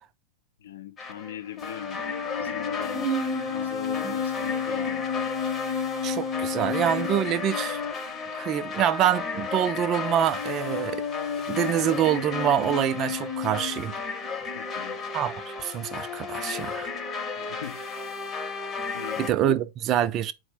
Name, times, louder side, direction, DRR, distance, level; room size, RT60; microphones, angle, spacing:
voice 1, 0.6-2.0 2.4-3.1 3.5-5.1 14.5-15.0 17.3-17.8 18.9-19.3, left 11 dB, 75° left, 0.5 m, -40 dB
sound 1, 1.0-19.3, left 5 dB, 25° left, 0.8 m, -31 dB
voice 2, 2.9-3.5 4.0-4.1 6.0-7.8 8.3-11.0 11.5-13.9 15.1-15.3 15.6-16.9 19.2-20.3, right 10 dB, 35° right, 0.4 m, -26 dB
4.1 x 2.1 x 4.4 m
hypercardioid pair, 110°, 0 cm